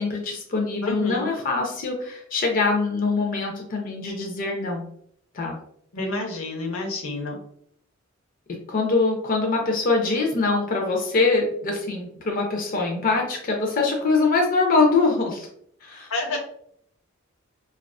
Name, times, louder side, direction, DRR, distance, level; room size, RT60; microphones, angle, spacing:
voice 1, 0.0-4.8 5.3-5.6 8.5-15.5 15.8-16.4, left 3 dB, 40° left, 1 dB, 0.4 m, -23 dB
voice 2, 0.8-1.3 5.9-7.4 16.1-16.4, left 2 dB, 85° left, 1 dB, 0.6 m, -29 dB
2.3 x 2.3 x 2.3 m, 0.67 s
head